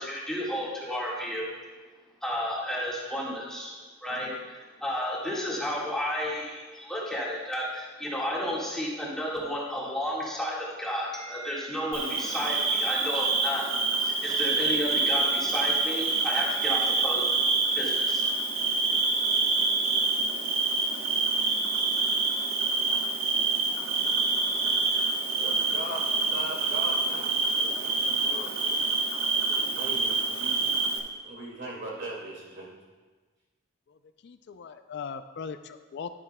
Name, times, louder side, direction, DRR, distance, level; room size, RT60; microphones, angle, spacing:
voice 1, 0.0-1.5 2.2-4.3 4.8-13.7 14.0-17.3 17.7-18.3, equal, 5° left, -6 dB, 1.6 m, -32 dB
Bird / Cricket, 11.9-31.0, right 3 dB, 75° right, 1.1 m, -26 dB
voice 2, 25.2-28.9 29.3-30.8 31.2-32.7, right 1 dB, 55° right, -3 dB, 2.2 m, -40 dB
voice 3, 33.9-36.2, left 6 dB, 55° left, 10 dB, 0.3 m, -40 dB
10.5 x 9.5 x 2.2 m, 1.3 s
head